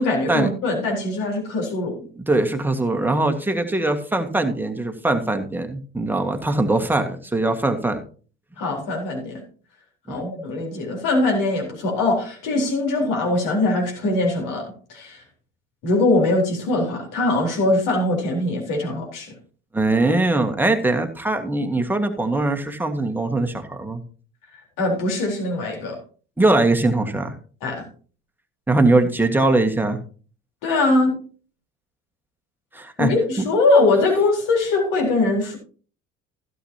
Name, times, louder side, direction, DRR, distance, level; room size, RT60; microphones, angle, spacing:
voice 1, 0.0-2.0 8.6-9.4 10.1-15.2 15.8-19.3 24.8-26.0 27.6-27.9 30.6-31.1 33.0-35.6, left 2 dB, 55° left, 1 dB, 4.2 m, -22 dB
voice 2, 2.3-8.0 10.1-10.2 19.7-24.0 26.4-27.3 28.7-30.0 32.7-33.1 33.4-33.5, right 2 dB, 5° right, 5 dB, 1.7 m, -21 dB
16.0 x 8.2 x 2.9 m, 0.40 s
figure-of-eight pair, 55°, 38 cm